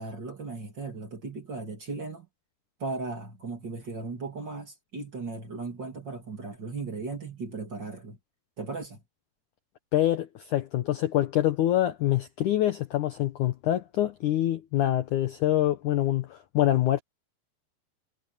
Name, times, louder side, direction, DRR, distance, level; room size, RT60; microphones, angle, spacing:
voice 1, 0.0-2.3 2.8-8.2 8.6-9.0, right 3 dB, 30° right, 2.9 m, -37 dB
voice 2, 9.9-17.0, left 13 dB, 70° left, 1.9 m, -25 dB
omnidirectional pair, 4.6 m